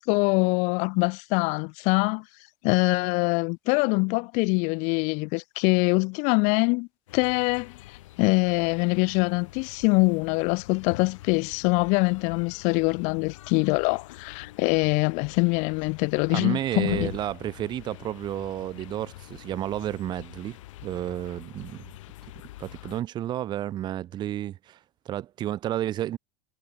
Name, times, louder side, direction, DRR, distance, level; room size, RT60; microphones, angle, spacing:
voice 1, 0.0-2.2 2.6-6.9 7.1-17.1, left 32 dB, 50° left, 0.5 m, -24 dB
sound 1, 7.1-23.0, left 16 dB, 85° left, 3.6 m, -45 dB
voice 2, 16.3-20.6 20.8-21.9 22.6-24.8 25.1-26.2, right 12 dB, 30° right, 0.7 m, -31 dB
supercardioid pair, 150°, 16 cm